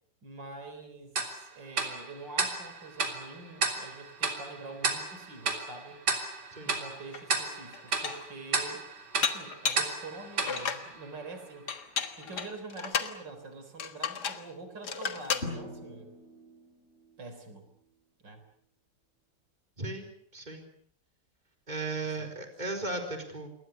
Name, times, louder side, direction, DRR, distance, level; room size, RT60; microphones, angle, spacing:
voice 1, 0.2-6.0 6.7-8.9 9.2-11.7 12.2-16.1 17.2-17.7 18.2-18.4 22.0-22.3, right 3 dB, 85° right, 8 dB, 4.5 m, -45 dB
Tick-tock, 1.2-11.6, right 4 dB, 70° right, 3.9 m, -34 dB
Dishes pots and pans, 7.1-7.2 7.7-8.3 9.2-9.9 10.4-10.9 11.7-13.2 13.8-14.5 14.8-15.5, left 6 dB, 65° left, 2.2 m, -33 dB
Drum, 15.4-17.3, left 2 dB, 35° left, 5.6 m, -42 dB
voice 2, 19.8-20.7 21.7-23.5, right 2 dB, 25° right, 4 dB, 4.5 m, -36 dB
28.5 x 22.0 x 6.9 m, 0.65 s
omnidirectional pair, 1.9 m